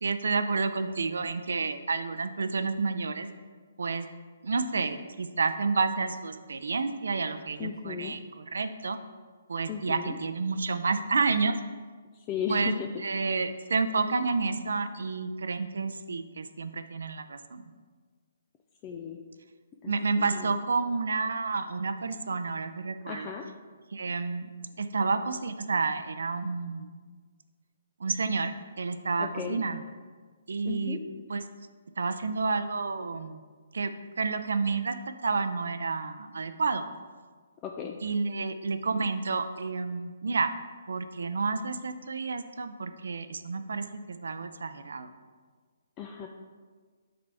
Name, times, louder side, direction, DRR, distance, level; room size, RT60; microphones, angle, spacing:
voice 1, 0.0-3.3 3.8-4.1 4.4-9.0 9.5-11.6 12.5-17.6 19.8-23.3 23.9-24.5 24.8-26.9 28.0-29.8 30.5-31.0 31.3-31.4 32.0-33.4 33.7-33.9 34.2-36.8 38.0-40.5 40.9-45.1, right 4 dB, 85° right, 10 dB, 0.5 m, -30 dB
voice 2, 7.6-8.1 9.7-10.2 12.3-12.9 18.8-19.2 19.8-20.6 23.1-23.4 29.2-29.6 30.6-31.0 37.6-38.0 46.0-46.3, left 7 dB, 20° left, 2 dB, 0.3 m, -35 dB
8.7 x 3.9 x 3.4 m, 1.5 s
hypercardioid pair, 165°, 0 cm